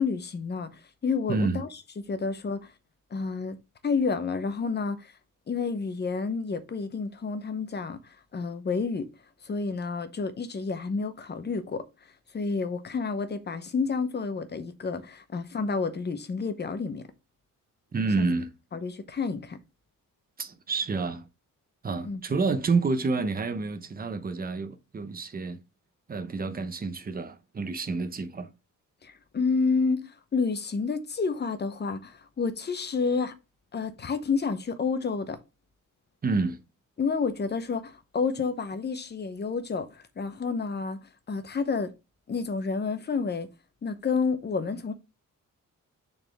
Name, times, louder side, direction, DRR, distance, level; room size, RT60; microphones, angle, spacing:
voice 1, 0.0-1.7 2.1-2.7 3.1-3.6 3.8-5.1 5.5-9.1 9.4-11.8 12.3-17.1 18.2-18.3 18.7-19.6 22.0-22.2 29.0-33.3 33.7-35.4 37.0-41.0 41.3-41.9 42.3-43.5 43.8-44.9, left 4 dB, 30° left, 0.8 m, -30 dB
voice 2, 1.3-1.6 17.9-18.5 20.4-21.3 21.8-25.6 26.1-28.5 36.2-36.6, right 4 dB, 30° right, 0.8 m, -29 dB
7.0 x 4.1 x 3.4 m
wide cardioid pair, 165°, 32 cm